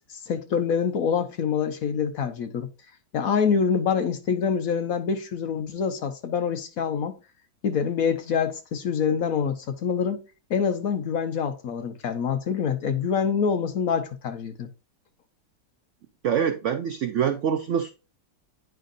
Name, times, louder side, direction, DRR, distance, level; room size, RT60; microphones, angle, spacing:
voice 1, 0.1-2.7 3.1-7.2 7.6-10.2 10.5-14.7, left 6 dB, 60° left, 1.1 m, -26 dB
voice 2, 16.2-17.9, right 8 dB, 90° right, 0.6 m, -25 dB
9.2 x 5.1 x 2.6 m
omnidirectional pair, 1.9 m